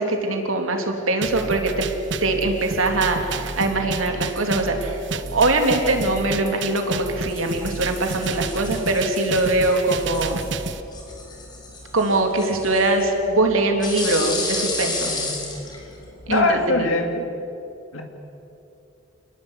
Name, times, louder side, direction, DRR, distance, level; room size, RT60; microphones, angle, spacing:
voice 1, 0.0-1.9 2.2-5.0 5.3-10.4 11.9-15.1 16.3-16.4 16.7-16.8, right 2 dB, 85° right, 4 dB, 3.3 m, -22 dB
sound 1, 1.2-10.8, right 4 dB, 60° right, 1.2 m, -31 dB
sound 2, 7.2-16.4, left 3 dB, 20° left, 4.8 m, -33 dB
voice 2, 15.1-15.4 16.3-17.2 17.9-18.0, left 2 dB, 90° left, 3 dB, 2.9 m, -22 dB
29.0 x 21.0 x 8.4 m, 2.8 s
head